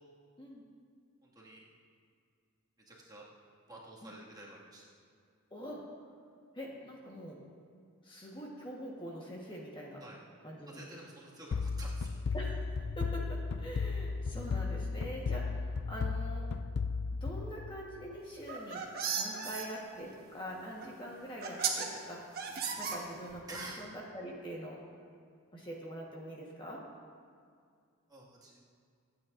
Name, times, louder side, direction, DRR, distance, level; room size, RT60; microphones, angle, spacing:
voice 1, 1.2-1.6 2.9-3.3 3.7-4.8 10.0-10.2 10.7-12.1 23.5-23.8 28.1-28.6, right 2 dB, 20° right, -5 dB, 2.0 m, -49 dB
voice 2, 5.5-5.8 6.5-7.4 8.0-10.0 10.4-10.8 12.3-16.5 17.2-18.8 19.1-22.2 22.8-24.8 25.5-26.8, equal, 25° left, -3 dB, 1.3 m, -44 dB
sound 1, 11.5-18.1, left 4 dB, 55° left, 0.3 m, -35 dB
sound 2, 18.4-19.7 20.8-20.9 21.4-21.9 22.4-23.4, right 6 dB, 45° right, 1.3 m, -35 dB
25.0 x 9.0 x 2.6 m, 2.2 s
head